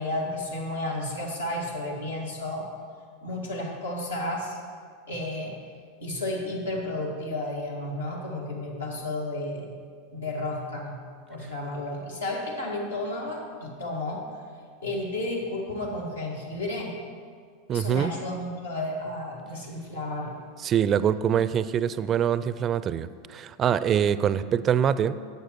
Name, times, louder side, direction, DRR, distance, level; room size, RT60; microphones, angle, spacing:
voice 1, 0.0-2.7 3.2-4.6 5.1-5.6 6.0-9.7 10.1-11.0 11.3-14.2 14.8-16.9 17.7-20.4, left 1 dB, 85° left, -2 dB, 1.9 m, -32 dB
voice 2, 17.7-18.1 20.6-25.1, right 9 dB, 35° right, 15 dB, 0.4 m, -24 dB
11.0 x 8.1 x 4.6 m, 2.1 s
figure-of-eight pair, 85°, 0 cm